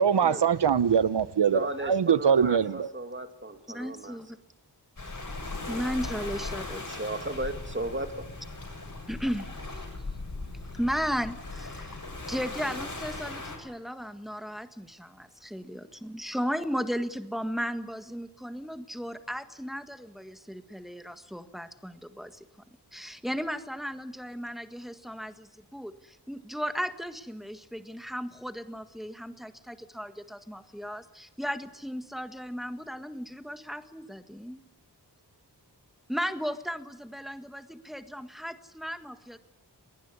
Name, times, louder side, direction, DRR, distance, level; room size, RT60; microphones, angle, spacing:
voice 1, 0.0-1.6 1.9-2.9, right 7 dB, 80° right, 17 dB, 0.9 m, -22 dB
voice 2, 1.5-4.1 6.9-8.2, right 1 dB, 30° right, 6 dB, 2.5 m, -35 dB
voice 3, 3.7-4.2 5.7-7.0 9.1-9.8 10.8-12.0 12.3-22.4 22.9-34.6 36.1-39.4, equal, ahead, 9 dB, 1.7 m, -35 dB
Waves surf, 5.0-13.6, left 2 dB, 50° left, 7.3 m, -38 dB
21.5 x 19.0 x 9.7 m, 0.89 s
wide cardioid pair, 95°, 41 cm